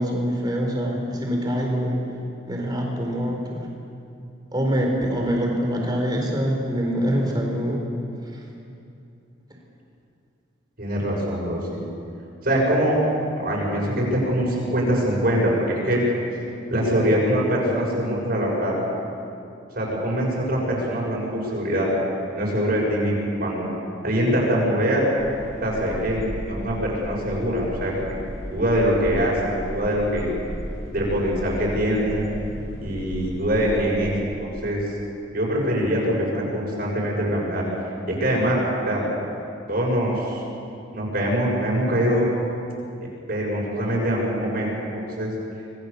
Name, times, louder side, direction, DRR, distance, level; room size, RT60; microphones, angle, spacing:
voice 1, 0.0-2.0 2.4-3.7 4.5-7.8, equal, 20° right, 0 dB, 4.4 m, -24 dB
voice 2, 10.8-11.8 12.4-13.0 13.4-16.0 16.7-18.8 19.7-21.9 22.3-23.7 24.0-25.1 25.6-28.1 28.5-30.3 30.9-32.2 32.8-34.1 34.4-34.8 35.3-37.6 38.1-38.6 38.9-39.0 39.7-40.4 40.9-42.3 43.3-45.3, equal, 50° right, -4 dB, 7.2 m, -23 dB
sound 1, 25.2-34.2, equal, 85° left, 4.3 m, -35 dB
27.0 x 21.5 x 7.1 m, 2.6 s
head